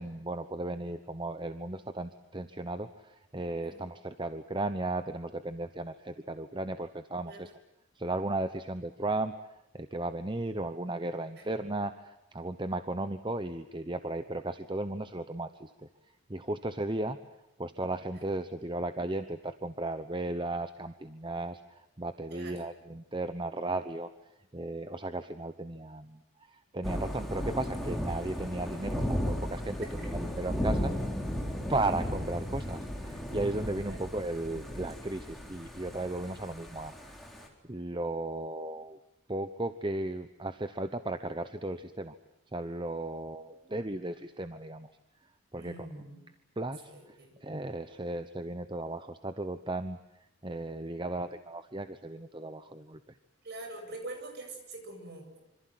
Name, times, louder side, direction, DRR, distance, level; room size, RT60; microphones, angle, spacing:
voice 1, 0.0-7.5 8.0-15.9 16.3-17.2 17.6-24.1 24.5-30.9 31.7-37.2 37.7-39.0 39.3-42.1 42.5-44.9 45.5-45.9 46.6-50.0 50.4-53.2, right 2 dB, 20° right, 10 dB, 0.9 m, -35 dB
voice 2, 22.3-22.6 30.0-30.1 33.8-34.0 45.5-46.2 46.9-47.3 53.4-55.4, right 2 dB, 50° right, 4 dB, 7.8 m, -44 dB
Thunder / Rain, 26.8-37.5, equal, ahead, 4.2 m, -35 dB
26.5 x 26.0 x 7.8 m, 0.90 s
head